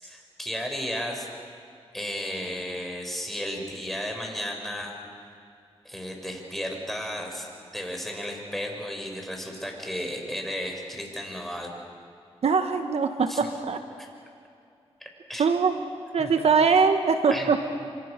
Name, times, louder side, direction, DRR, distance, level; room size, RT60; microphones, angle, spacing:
voice 1, 0.0-1.3 1.9-5.0 5.8-7.5 7.7-11.7 13.3-13.4 15.3-15.4 16.2-16.3 17.3-17.5, equal, ahead, 1 dB, 6.3 m, -33 dB
voice 2, 12.4-13.8 15.4-15.7 16.1-17.7, right 5 dB, 70° right, 7 dB, 1.4 m, -22 dB
27.0 x 26.0 x 6.7 m, 2.4 s
cardioid pair, 60°, 11 cm